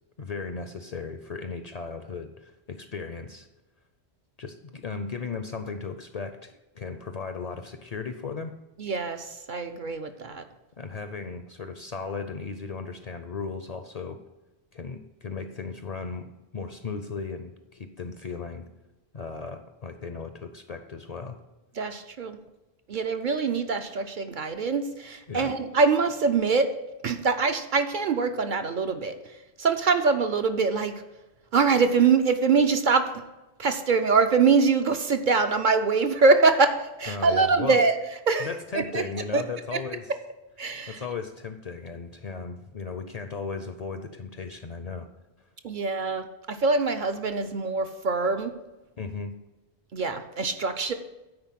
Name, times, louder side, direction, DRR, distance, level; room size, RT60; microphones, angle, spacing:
voice 1, 0.2-3.5 4.4-8.5 10.8-14.2 14.7-18.7 19.1-21.4 25.3-25.6 37.1-37.8 38.4-40.1 40.9-45.1 49.0-49.3, left 4 dB, 45° left, 8 dB, 0.6 m, -36 dB
voice 2, 8.8-10.4 21.8-22.4 22.9-26.7 27.0-29.1 29.6-31.0 31.5-33.1 33.6-36.7 37.0-37.9 38.3-38.5 38.7-39.0 39.3-39.4 39.7-39.8 40.6-41.0 45.6-48.5 49.9-50.9, right 4 dB, 55° right, 7 dB, 0.7 m, -23 dB
9.7 x 4.3 x 7.4 m, 1.0 s
omnidirectional pair, 1.1 m